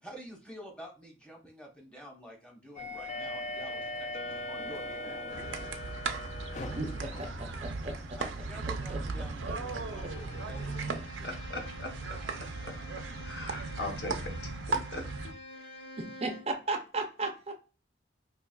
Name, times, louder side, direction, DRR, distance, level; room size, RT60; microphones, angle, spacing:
voice 1, 0.0-5.2 8.2-11.3, equal, 5° left, 0.9 m, -49 dB
sound 1, 2.8-11.0, left 1 dB, 40° left, 0.3 m, -41 dB
sound 2, 5.3-15.3, right 3 dB, 90° right, 0.5 m, -37 dB
voice 2, 6.8-8.2 8.9-9.0 16.0-17.5, right 2 dB, 30° right, 0.4 m, -36 dB
Bowed string instrument, 9.8-16.6, left 2 dB, 80° left, 1.9 m, -49 dB
voice 3, 11.2-12.2 12.6-12.7 13.2-15.0, left 2 dB, 65° left, 0.9 m, -40 dB
4.6 x 2.9 x 2.2 m
head